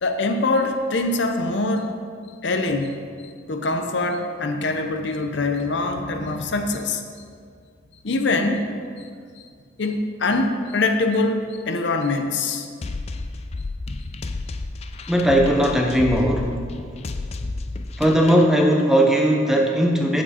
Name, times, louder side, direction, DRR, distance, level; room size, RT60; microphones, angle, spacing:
voice 1, 0.0-2.0 2.4-3.0 3.2-7.0 8.0-8.7 9.0-9.1 9.4-9.5 9.8-12.7, left 2 dB, 60° left, 5 dB, 0.7 m, -23 dB
sound 1, 12.8-18.5, left 2 dB, 30° left, 0.3 m, -31 dB
voice 2, 15.1-16.6 18.0-20.2, equal, ahead, 1 dB, 0.6 m, -18 dB
8.9 x 7.4 x 4.2 m, 2.1 s
head